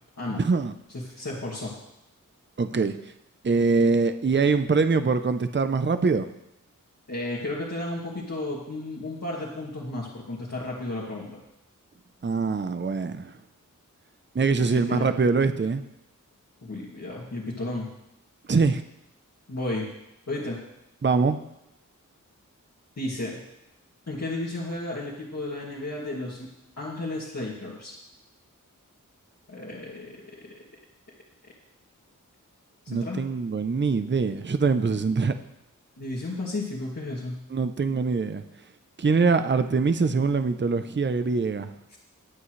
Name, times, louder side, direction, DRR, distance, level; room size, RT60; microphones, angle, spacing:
voice 1, 0.4-0.7 2.6-3.0 3.4-6.3 12.2-13.3 14.3-15.8 18.5-18.8 21.0-21.4 32.9-35.3 37.5-38.4 39.0-41.7, right 4 dB, 35° right, 10 dB, 0.7 m, -23 dB
voice 2, 0.9-1.7 7.1-11.4 14.6-15.1 16.6-17.9 19.5-19.8 20.3-20.6 23.0-23.4 24.1-26.5 26.8-27.9 29.5-30.3 32.8-33.2 36.0-37.4 41.9-42.0, left 2 dB, 55° left, -7 dB, 2.4 m, -33 dB
20.5 x 8.5 x 3.3 m, 0.84 s
wide cardioid pair, 80°, 32 cm